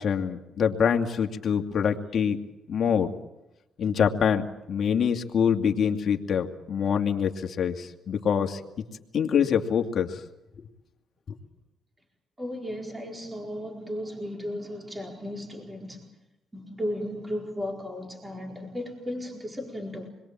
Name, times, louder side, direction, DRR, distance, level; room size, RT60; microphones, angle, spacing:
voice 1, 0.0-2.4 2.7-3.1 3.8-8.6 9.1-10.2, left 7 dB, 55° left, 2.3 m, -25 dB
voice 2, 12.4-16.1 16.5-20.1, left 1 dB, 15° right, 4.6 m, -35 dB
28.0 x 22.0 x 7.5 m
cardioid pair, 90°, 0 cm